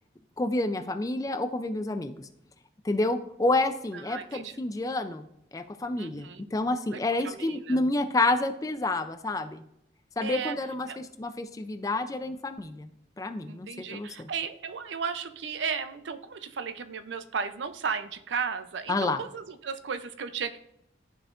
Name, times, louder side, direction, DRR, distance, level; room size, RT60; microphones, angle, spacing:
voice 1, 0.4-2.3 2.8-5.3 5.5-9.6 10.2-12.9 13.2-14.3 18.9-19.2, left 2 dB, 20° left, 9 dB, 0.3 m, -29 dB
voice 2, 3.9-4.5 6.0-6.4 6.9-7.8 10.2-10.6 10.9-11.0 13.5-20.6, right 6 dB, 80° right, 11 dB, 0.5 m, -35 dB
12.5 x 4.2 x 2.5 m, 0.79 s
head